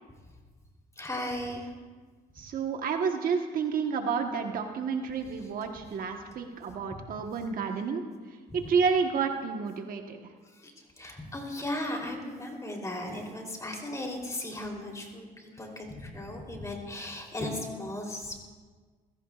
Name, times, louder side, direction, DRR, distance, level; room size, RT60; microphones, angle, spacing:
voice 1, 1.0-1.7 8.5-8.6 10.6-10.7 11.0-18.3, left 1 dB, 20° left, 0 dB, 3.5 m, -36 dB
voice 2, 2.3-8.0 8.5-10.2, right 5 dB, 55° right, 4 dB, 1.3 m, -30 dB
28.0 x 16.5 x 2.5 m, 1.5 s
cardioid pair, 110°, 17 cm